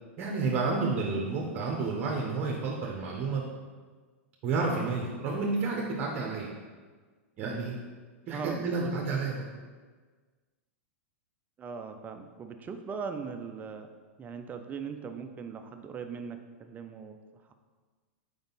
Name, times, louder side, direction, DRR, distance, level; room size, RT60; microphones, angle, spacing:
voice 1, 0.2-3.4 4.4-6.5 7.4-7.8 8.3-9.5, right 4 dB, 40° right, -1 dB, 0.9 m, -30 dB
voice 2, 8.3-8.9 11.6-13.9 14.2-17.2, right 5 dB, 25° right, 7 dB, 0.5 m, -39 dB
5.2 x 4.9 x 4.0 m, 1.4 s
hypercardioid pair, 105°, 7 cm